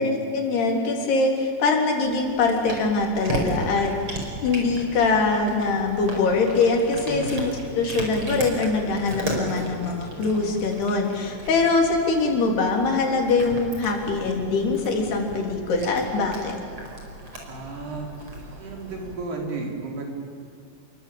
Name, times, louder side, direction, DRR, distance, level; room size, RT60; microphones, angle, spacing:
voice 1, 0.0-3.9 4.4-16.6, left 3 dB, 85° left, 2 dB, 5.6 m, -23 dB
Cat, 2.0-19.1, right 1 dB, 30° right, 5.6 m, -35 dB
voice 2, 7.1-7.4 17.5-18.1 18.5-20.0, right 3 dB, 85° right, 1 dB, 6.4 m, -33 dB
29.0 x 23.0 x 8.9 m, 2.4 s
omnidirectional pair, 4.5 m